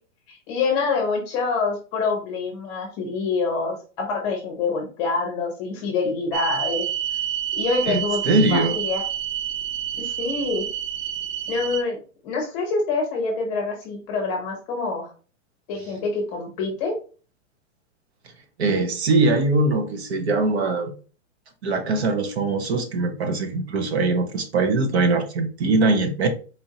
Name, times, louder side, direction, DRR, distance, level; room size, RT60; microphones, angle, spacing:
voice 1, 0.3-6.8 7.5-9.0 10.0-10.7 11.5-12.0 12.2-15.1 15.7-16.9, left 4 dB, 20° left, 0 dB, 0.7 m, -26 dB
sound 1, 6.3-11.8, right 10 dB, 85° right, 0.6 m, -28 dB
voice 2, 7.9-8.8 18.6-20.9 21.6-26.3, right 3 dB, 55° right, 6 dB, 0.8 m, -22 dB
4.2 x 2.6 x 2.8 m, 0.37 s
hypercardioid pair, 170°, 38 cm